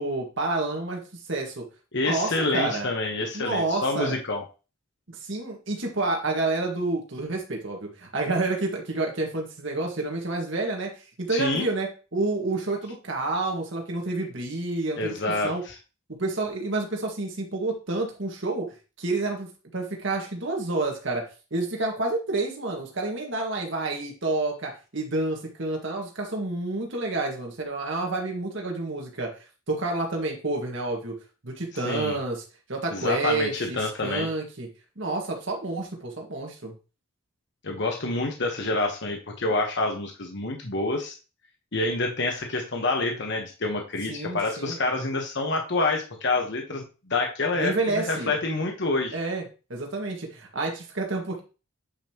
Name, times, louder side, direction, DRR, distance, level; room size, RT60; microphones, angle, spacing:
voice 1, 0.0-1.7 2.0-2.9 3.3-4.2 5.1-10.9 11.2-15.1 15.4-15.6 16.2-18.7 19.0-29.3 29.7-31.2 31.4-32.4 32.7-34.7 35.0-36.7 44.1-44.8 47.5-48.3 49.1-49.4 49.7-51.4, right 2 dB, 60° right, 1 dB, 1.9 m, -29 dB
voice 2, 1.9-4.4 11.3-11.7 15.0-15.7 31.8-32.1 32.9-34.3 37.6-41.1 41.7-49.2, left 2 dB, 55° left, 2 dB, 1.2 m, -27 dB
8.8 x 5.3 x 3.0 m, 0.32 s
head